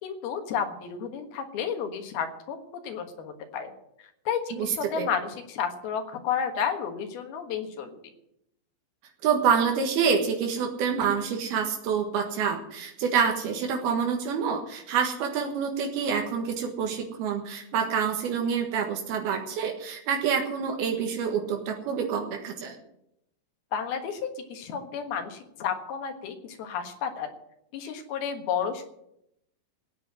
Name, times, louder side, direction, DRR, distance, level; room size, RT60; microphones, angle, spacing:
voice 1, 0.0-2.6 2.8-3.7 4.3-8.0 23.7-27.3 27.7-28.8, left 7 dB, 80° left, 5 dB, 3.4 m, -31 dB
voice 2, 4.5-5.1 9.2-22.8, right 6 dB, 80° right, 2 dB, 3.4 m, -27 dB
16.5 x 9.2 x 7.6 m, 0.79 s
omnidirectional pair, 4.3 m